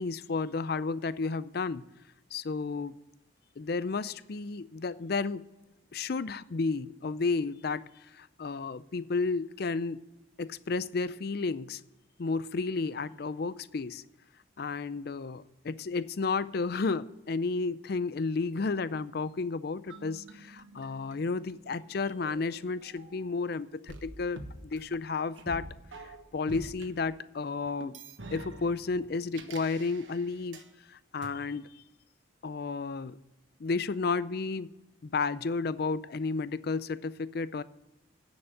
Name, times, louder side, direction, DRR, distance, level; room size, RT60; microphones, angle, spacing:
voice 1, 0.0-1.8 2.3-2.9 3.6-5.5 5.9-10.1 10.4-11.8 12.2-14.0 14.6-24.4 24.7-25.7 26.0-27.9 28.3-30.6 30.9-31.8 32.4-33.2 33.6-34.7 35.0-37.6, left 4 dB, 50° left, 17 dB, 0.4 m, -32 dB
sound 1, 19.9-23.4 23.9-26.9 27.8-30.7 31.2-31.3, right 2 dB, 75° right, 1.3 m, -47 dB
10.0 x 7.1 x 8.9 m, 1.0 s
head